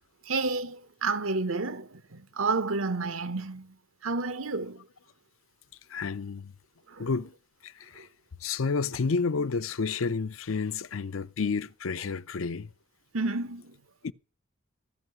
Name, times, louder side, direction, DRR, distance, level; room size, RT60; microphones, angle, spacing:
voice 1, 0.3-3.7 4.0-4.8 6.9-7.1 13.1-13.7, right 3 dB, 85° right, 1.1 m, -30 dB
voice 2, 5.9-6.5 7.0-7.3 7.6-8.1 8.4-12.7 14.0-14.1, left 4 dB, 80° left, 0.6 m, -30 dB
15.0 x 5.7 x 9.2 m
head